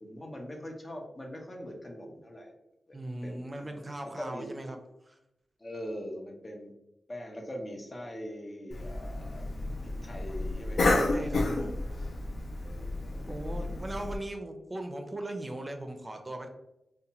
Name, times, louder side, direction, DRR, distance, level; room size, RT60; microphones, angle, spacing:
voice 1, 0.0-2.5 2.9-4.5 5.6-6.7 7.1-9.5 9.8-10.8 12.6-13.8, equal, 40° left, 1 dB, 0.6 m, -42 dB
voice 2, 2.9-4.8 5.1-5.2 11.1-11.8 13.3-16.5, right 1 dB, 30° right, 4 dB, 0.5 m, -39 dB
Cough, 8.7-14.2, left 2 dB, 75° left, 0.4 m, -31 dB
2.7 x 2.2 x 2.7 m, 0.87 s
cardioid pair, 40°, 0 cm